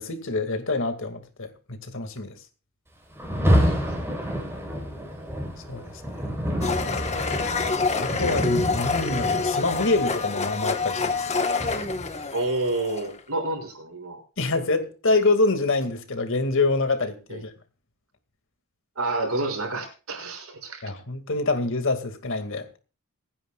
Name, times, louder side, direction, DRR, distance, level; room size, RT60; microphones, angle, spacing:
voice 1, 0.0-2.3 5.7-6.2 7.9-11.3 14.4-17.5 20.8-22.8, left 3 dB, 60° left, 2.2 m, -26 dB
Rain, 3.1-12.2, equal, 10° right, 3.9 m, -28 dB
Domestic sounds home sounds, 6.6-13.2, left 4 dB, 30° left, 1.3 m, -27 dB
voice 2, 12.3-14.2 17.3-17.4 19.0-20.8, right 2 dB, 75° right, 6.2 m, -29 dB
26.5 x 10.0 x 2.4 m
head